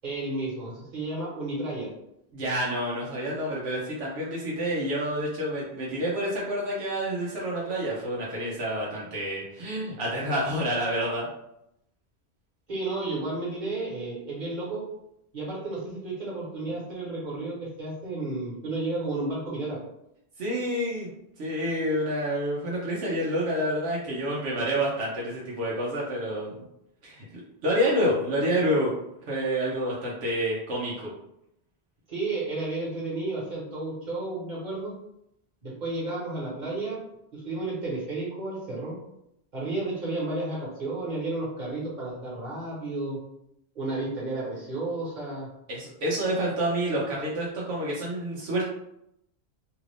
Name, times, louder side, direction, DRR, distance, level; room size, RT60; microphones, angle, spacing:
voice 1, 0.0-1.9 12.7-14.8 15.3-19.8 32.1-34.9 35.6-37.0 37.3-39.0 39.5-43.2 43.7-45.5, right 2 dB, 45° right, -5 dB, 1.4 m, -32 dB
voice 2, 2.3-11.3 20.4-21.1 21.4-26.6 27.0-28.9 29.3-31.1 45.7-48.6, equal, 80° right, -5 dB, 1.0 m, -28 dB
2.8 x 2.5 x 3.2 m, 0.80 s
omnidirectional pair, 1.1 m